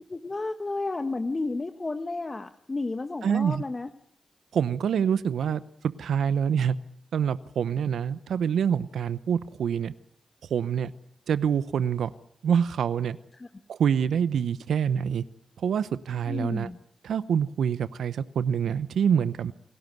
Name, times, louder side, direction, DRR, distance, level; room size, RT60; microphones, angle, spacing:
voice 1, 0.1-3.9 5.5-5.6 13.3-13.5 16.3-16.8, left 3 dB, 40° left, 8 dB, 1.3 m, -32 dB
voice 2, 3.2-3.6 4.5-5.6 6.0-6.8 7.1-9.9 10.5-10.9 11.3-12.1 12.4-13.2 13.7-15.2 15.6-16.7 17.0-19.5, right 8 dB, 80° right, 15 dB, 0.8 m, -26 dB
28.0 x 12.0 x 9.3 m, 0.69 s
supercardioid pair, 40°, 0 cm